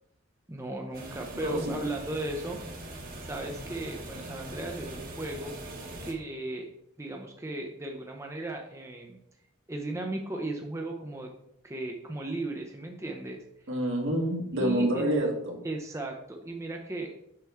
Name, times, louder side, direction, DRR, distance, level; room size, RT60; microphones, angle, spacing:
voice 1, 0.5-2.6 3.2-5.5 6.0-6.7 7.0-9.2 9.7-11.3 11.6-13.4 14.6-15.1 15.6-17.1, right 2 dB, 15° right, 2 dB, 0.6 m, -36 dB
sound 1, 0.9-6.1, right 1 dB, 45° right, 1.3 m, -42 dB
voice 2, 1.3-1.8 13.7-15.6, right 1 dB, 65° right, 1 dB, 1.7 m, -28 dB
7.6 x 5.9 x 3.5 m, 0.77 s
head